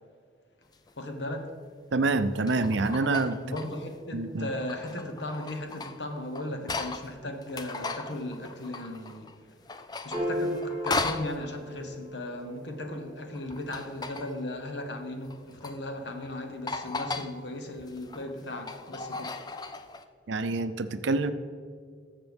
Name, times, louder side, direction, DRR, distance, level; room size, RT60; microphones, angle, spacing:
sound 1, 0.7-0.9 2.1-3.9 4.4-7.1 7.4-9.3 9.7-11.3 13.3-14.4 15.2-15.8 16.2-16.3 16.7-17.3 17.8-20.0, left 3 dB, 20° left, 0.4 m, -37 dB
voice 1, 1.0-1.5 3.4-9.6 10.0-19.3, left 1 dB, 65° left, 5 dB, 1.1 m, -37 dB
voice 2, 1.9-3.4 4.1-4.5 20.3-21.3, right 3 dB, 75° right, 11 dB, 0.5 m, -26 dB
Piano, 10.1-16.7, equal, 25° right, 2.0 m, -38 dB
14.0 x 6.6 x 3.5 m, 2.1 s
head